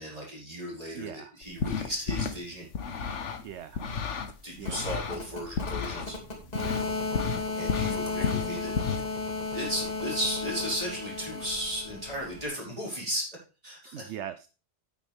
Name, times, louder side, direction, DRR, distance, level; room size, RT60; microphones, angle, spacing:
voice 1, 0.0-2.7 4.4-6.2 7.5-8.7 9.5-13.3 13.6-14.1, equal, 30° right, -4 dB, 5.1 m, -35 dB
voice 2, 0.9-1.4 3.4-3.8 4.6-5.0 6.5-7.0 13.9-14.5, right 10 dB, 75° right, 13 dB, 0.9 m, -42 dB
sound 1, 1.4-2.4 2.7-4.3 4.7-6.1 6.5-6.9 7.1-9.0, left 6 dB, 85° left, 1.4 m, -31 dB
sound 2, 4.6-12.5, left 4 dB, 35° left, 2.7 m, -34 dB
9.3 x 9.3 x 3.5 m, 0.32 s
omnidirectional pair, 1.2 m